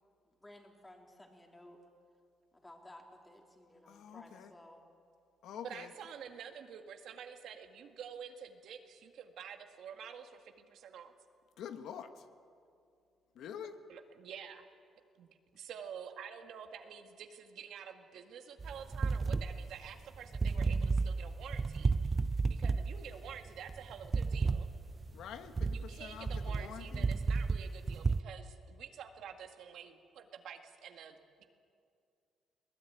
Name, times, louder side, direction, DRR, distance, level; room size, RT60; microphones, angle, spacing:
voice 1, 0.2-1.8 2.5-4.8, left 1 dB, 15° left, 2 dB, 3.8 m, -56 dB
voice 2, 3.9-4.5 5.4-5.9 11.6-12.1 13.3-13.8 25.1-27.1, left 8 dB, 80° left, 8 dB, 1.4 m, -46 dB
voice 3, 5.6-11.1 13.9-14.7 15.2-15.3 15.5-22.1 22.5-24.7 25.6-31.4, right 7 dB, 75° right, 6 dB, 1.9 m, -49 dB
sound 1, 18.6-28.2, right 4 dB, 30° right, 0.6 m, -32 dB
22.0 x 18.5 x 9.5 m, 2.4 s
cardioid pair, 90°, 0 cm